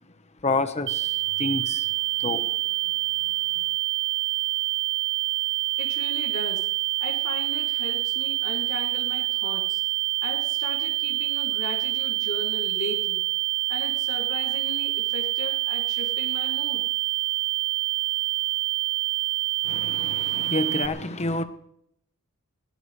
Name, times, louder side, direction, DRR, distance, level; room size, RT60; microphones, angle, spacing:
voice 1, 0.4-1.9 2.2-2.9 3.2-3.6 19.6-21.4, left 2 dB, 30° left, 1.2 m, -29 dB
sound 1, 0.9-20.9, right 18 dB, 60° right, 0.7 m, -27 dB
voice 2, 5.8-6.7 7.0-9.8 10.2-13.2 13.7-16.9, left 2 dB, 85° left, 2.9 m, -37 dB
21.0 x 18.0 x 3.3 m
head